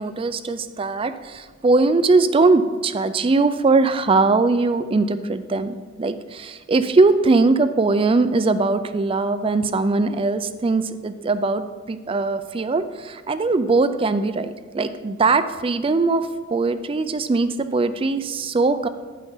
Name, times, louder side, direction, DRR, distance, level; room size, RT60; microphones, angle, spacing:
voice 1, 0.0-11.6 11.9-18.9, right 3 dB, 30° right, 11 dB, 0.4 m, -20 dB
9.3 x 5.6 x 5.6 m, 1.4 s
head